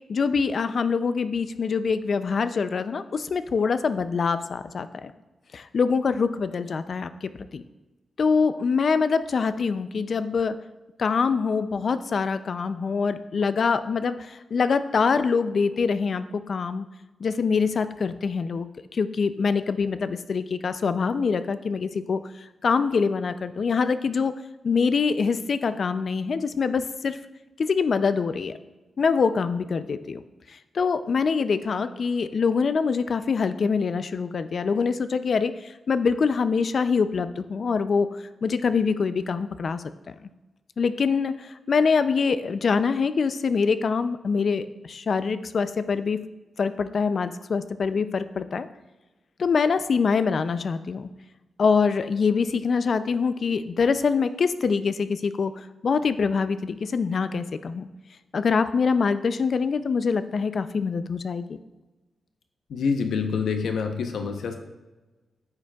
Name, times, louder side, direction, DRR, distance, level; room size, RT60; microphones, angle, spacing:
voice 1, 0.1-5.1 5.5-7.6 8.2-10.6 11.0-16.9 17.2-18.7 18.9-22.2 22.6-24.3 24.6-27.2 27.6-28.5 29.0-30.2 30.7-38.1 38.4-39.8 40.8-46.2 46.6-48.7 49.4-51.1 51.6-57.9 58.3-61.6, left 5 dB, 45° left, 12 dB, 0.3 m, -24 dB
voice 2, 62.7-64.6, left 5 dB, 85° left, 5 dB, 0.8 m, -26 dB
9.5 x 7.3 x 2.3 m, 1.2 s
wide cardioid pair, 160°, 0 cm